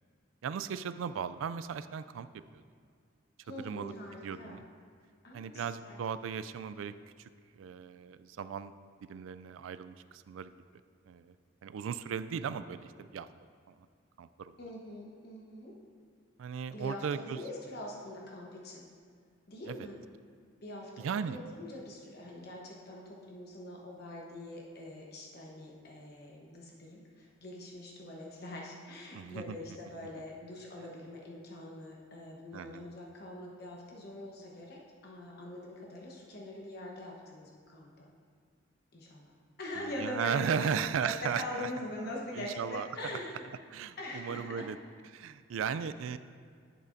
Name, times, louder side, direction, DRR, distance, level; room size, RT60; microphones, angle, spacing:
voice 1, 0.4-2.3 2.5-2.6 3.6-3.9 4.2-4.6 5.3-6.9 7.2-8.7 9.1-10.5 11.1-11.3 11.6-13.3 13.7-13.8 14.2-14.6 16.4-17.4 19.7-19.8 21.0-21.4 29.1-29.6 32.5-32.9 40.0-41.7 42.3-42.9 43.7-44.8 45.1-46.2, right 7 dB, 80° right, 13 dB, 0.3 m, -36 dB
voice 2, 3.4-4.6 5.2-6.0 14.6-15.7 16.7-18.9 19.5-20.0 20.6-38.1 38.9-43.5 44.0-44.6, left 1 dB, 50° left, -2 dB, 1.1 m, -43 dB
10.0 x 8.1 x 2.6 m, 2.1 s
head